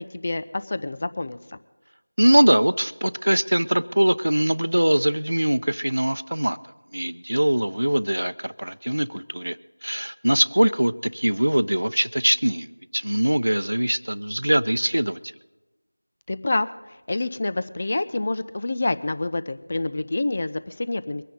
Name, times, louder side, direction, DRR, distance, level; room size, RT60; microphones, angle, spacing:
voice 1, 0.0-1.4 16.3-16.7 17.1-21.2, left 2 dB, 30° left, 13 dB, 0.5 m, -27 dB
voice 2, 2.2-6.6 6.9-9.6 9.8-15.2, right 1 dB, 65° right, 15 dB, 0.7 m, -22 dB
23.5 x 10.0 x 4.0 m, 1.1 s
figure-of-eight pair, 175°, 0 cm